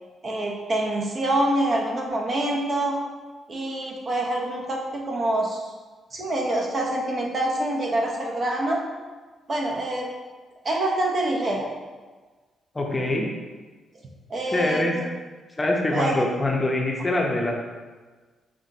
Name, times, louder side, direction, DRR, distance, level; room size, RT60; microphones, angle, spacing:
voice 1, 0.2-3.0 3.5-5.6 6.1-8.8 9.5-10.1 10.6-11.7 14.3-15.1 15.9-16.2, right 1 dB, 45° right, -1 dB, 0.8 m, -26 dB
voice 2, 12.7-13.3 14.5-14.9 15.6-17.6, left 2 dB, 25° left, 0 dB, 0.6 m, -24 dB
5.6 x 2.5 x 2.7 m, 1.4 s
cardioid pair, 75°, 0 cm